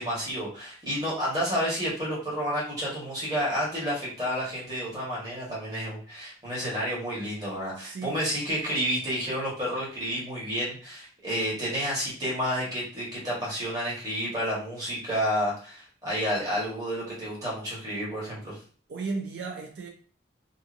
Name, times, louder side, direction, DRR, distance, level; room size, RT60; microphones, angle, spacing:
voice 1, 0.0-18.6, equal, 20° right, 1.2 m, -30 dB
voice 2, 7.8-8.1 18.9-19.9, right 4 dB, 70° right, 0.4 m, -34 dB
2.6 x 2.5 x 2.4 m
head